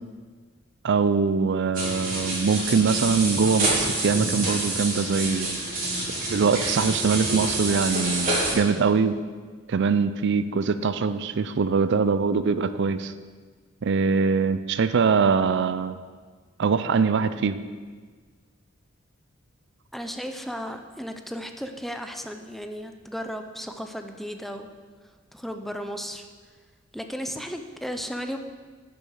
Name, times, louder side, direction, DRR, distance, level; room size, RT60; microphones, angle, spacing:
voice 1, 0.8-5.6 6.3-9.2 9.7-13.1 13.8-16.0 16.6-17.6, right 5 dB, 60° right, 12 dB, 0.4 m, -23 dB
sound 1, 1.7-8.5, right 2 dB, 45° right, 3.8 m, -27 dB
voice 2, 19.9-24.7 25.3-26.3 26.9-28.4, equal, ahead, 6 dB, 0.6 m, -35 dB
10.5 x 6.9 x 6.4 m, 1.5 s
head